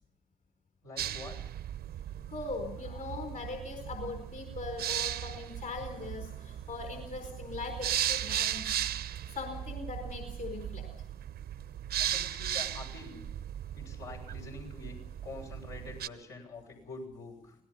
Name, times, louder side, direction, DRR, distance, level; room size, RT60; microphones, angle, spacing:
voice 1, 0.8-1.5 12.0-13.2 13.7-15.0 15.2-17.6, left 3 dB, 75° left, -2 dB, 7.7 m, -46 dB
sound 1, 1.0-16.1, right 11 dB, 60° right, 0.9 m, -37 dB
voice 2, 2.3-8.8 9.3-10.8, left 3 dB, 45° left, 4 dB, 4.5 m, -40 dB
26.0 x 18.5 x 5.7 m, 0.76 s
hypercardioid pair, 45°, 19 cm